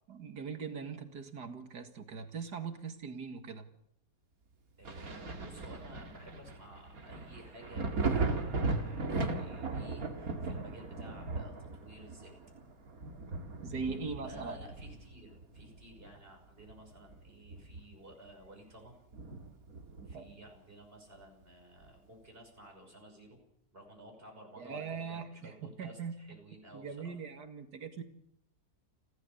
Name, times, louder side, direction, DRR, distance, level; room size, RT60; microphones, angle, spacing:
voice 1, 0.1-3.7 13.6-14.6 20.1-20.3 24.6-26.2 26.7-28.0, right 5 dB, 90° right, 7 dB, 2.6 m, -41 dB
voice 2, 4.8-12.3 13.8-18.9 20.1-23.4 23.7-27.2, right 1 dB, 35° right, 2 dB, 6.2 m, -54 dB
Thunder, 4.8-16.2 16.6-18.1 18.5-18.6 19.1-20.4 21.8-21.9, right 3 dB, 60° right, 2.5 m, -38 dB
30.0 x 13.0 x 7.0 m, 0.71 s
omnidirectional pair, 1.7 m